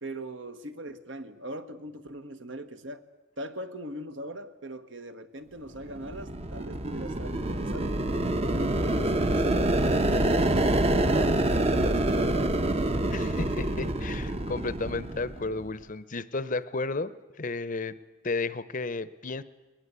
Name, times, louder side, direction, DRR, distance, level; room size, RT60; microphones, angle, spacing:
voice 1, 0.0-3.0 3.4-8.0 8.5-12.6 14.7-14.8, right 1 dB, 65° right, 9 dB, 1.5 m, -40 dB
sound 1, 5.8-15.6, right 1 dB, 30° right, 0.9 m, -26 dB
voice 2, 13.1-17.1 17.4-18.0 18.2-19.4, left 3 dB, 40° left, 16 dB, 0.7 m, -33 dB
21.5 x 20.5 x 8.3 m, 1.1 s
head